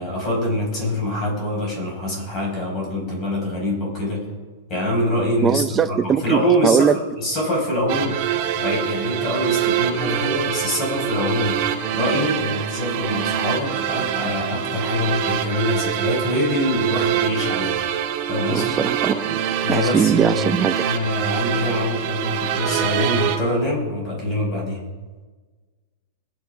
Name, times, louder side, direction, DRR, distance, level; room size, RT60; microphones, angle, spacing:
voice 1, 0.0-4.2 4.7-11.7 11.9-17.8 18.3-18.8 19.6-20.6 20.8-24.8, left 1 dB, 25° left, -2 dB, 5.1 m, -24 dB
voice 2, 5.4-6.9 18.5-19.4 19.7-20.7, right 7 dB, 15° right, 11 dB, 0.5 m, -20 dB
sound 1, 7.9-23.4, right 10 dB, 35° right, 1.5 m, -25 dB
21.5 x 9.5 x 5.0 m, 1.4 s
supercardioid pair, 175°, 0 cm